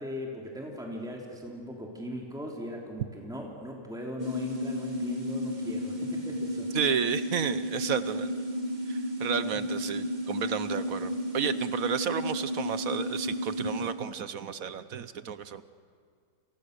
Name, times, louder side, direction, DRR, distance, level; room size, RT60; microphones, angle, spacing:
voice 1, 0.0-6.9, equal, ahead, -1 dB, 3.2 m, -39 dB
sound 1, 4.2-13.9, equal, 25° right, 2.0 m, -33 dB
voice 2, 6.7-8.3 8.9-15.6, right 8 dB, 60° right, 13 dB, 1.1 m, -32 dB
29.0 x 28.5 x 6.7 m, 2.1 s
omnidirectional pair, 1.9 m